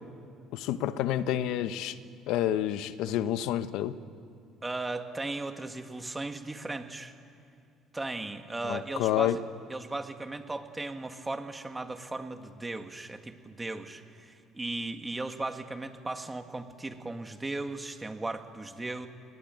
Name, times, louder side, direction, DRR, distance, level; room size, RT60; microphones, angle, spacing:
voice 1, 0.5-2.0 2.3-4.0 8.7-9.4, left 12 dB, 80° left, 13 dB, 1.0 m, -29 dB
voice 2, 4.6-7.1 7.9-9.4 9.7-19.1, right 2 dB, 15° right, 7 dB, 2.0 m, -37 dB
29.5 x 21.0 x 9.2 m, 2.3 s
cardioid pair, 100°, 0 cm